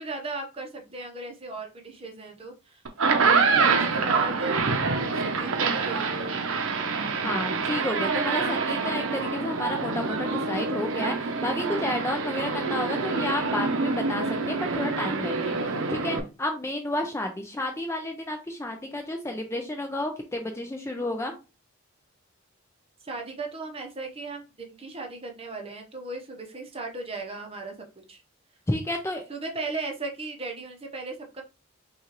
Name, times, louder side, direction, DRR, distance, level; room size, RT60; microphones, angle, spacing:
voice 1, 0.0-2.8 3.1-4.6 5.1-6.4 23.0-28.2 29.3-31.4, right 3 dB, 25° right, 2 dB, 0.8 m, -37 dB
sound 1, 2.9-16.2, right 4 dB, 65° right, 0.7 m, -26 dB
voice 2, 7.2-21.3 28.7-29.2, left 1 dB, 10° left, 4 dB, 0.4 m, -31 dB
5.9 x 2.4 x 2.9 m, 0.30 s
head